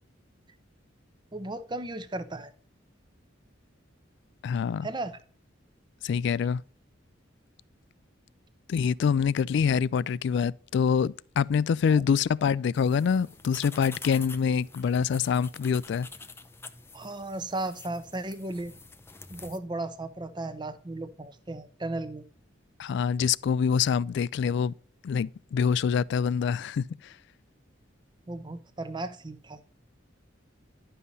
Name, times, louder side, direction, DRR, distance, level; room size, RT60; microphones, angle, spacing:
voice 1, 1.3-2.5 4.8-5.2 11.9-12.0 16.9-18.7 19.3-22.2 28.3-29.6, right 2 dB, 25° right, 0.7 m, -35 dB
voice 2, 4.4-4.9 6.0-6.6 8.7-16.1 22.8-24.7 25.0-27.1, left 6 dB, 65° left, 0.3 m, -25 dB
sound 1, 12.7-19.6, left 4 dB, 15° left, 0.5 m, -47 dB
11.0 x 5.6 x 4.0 m
head